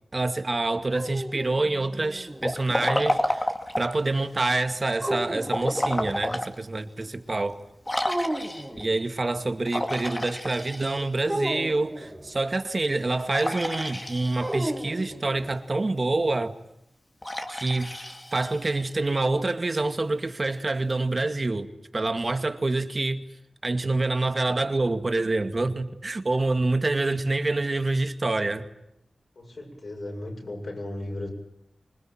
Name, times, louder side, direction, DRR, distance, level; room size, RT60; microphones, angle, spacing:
voice 1, 0.1-3.5 3.8-7.6 8.8-16.6 17.5-17.9 18.3-23.2 23.6-28.7, right 2 dB, 45° right, 2.2 m, -26 dB
sound 1, 0.7-2.5 5.0-6.2 8.1-8.9 11.3-12.4 14.4-15.6, right 1 dB, 15° right, 3.2 m, -33 dB
Liquid, 2.4-4.0 5.4-6.5 7.0-7.1 7.9-8.8 9.7-11.3 13.3-14.7 17.2-18.9, left 1 dB, 25° left, 2.8 m, -30 dB
voice 2, 29.4-31.3, left 1 dB, 65° left, 7.6 m, -36 dB
26.0 x 20.5 x 9.2 m
cardioid pair, 45°, 0 cm